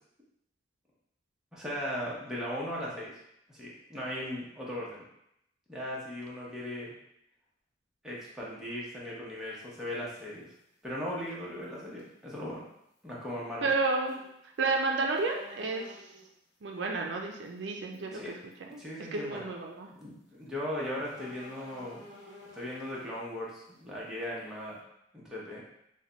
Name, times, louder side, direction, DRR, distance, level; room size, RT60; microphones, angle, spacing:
voice 1, 1.5-3.1 3.5-5.0 5.7-6.9 8.0-10.5 10.8-12.6 13.0-13.7 17.9-18.3 18.8-19.5 19.9-22.1 22.5-24.8 25.1-25.6, left 1 dB, 5° right, -6 dB, 0.8 m, -38 dB
sound 1, 9.4-9.5 11.1-11.3 11.6-11.7 12.0-12.1 14.0-14.3 14.6-14.7 15.1-16.3 17.3-17.5 17.9-18.0 18.5-18.7 19.2-19.3 21.1-23.2, left 1 dB, 75° left, 0.9 m, -51 dB
voice 2, 13.6-14.1 14.6-15.8 16.6-18.3 18.7-18.8 19.1-19.9, right 3 dB, 75° right, 2 dB, 0.4 m, -31 dB
3.2 x 2.2 x 3.8 m, 0.79 s
head